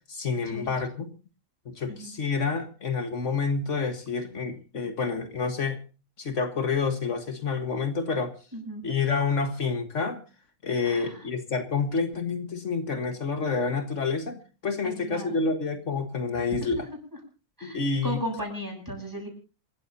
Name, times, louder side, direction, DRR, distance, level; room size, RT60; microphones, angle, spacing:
voice 1, 0.1-1.1 1.7-5.8 6.2-8.3 8.8-10.2 10.6-16.9 17.6-18.2, left 4 dB, 70° left, 7 dB, 1.9 m, -28 dB
voice 2, 8.5-8.8 10.8-11.2 14.8-15.3 16.6-16.7 17.6-19.3, equal, 15° right, 1 dB, 7.6 m, -36 dB
27.5 x 14.0 x 2.8 m, 0.35 s
omnidirectional pair, 1.3 m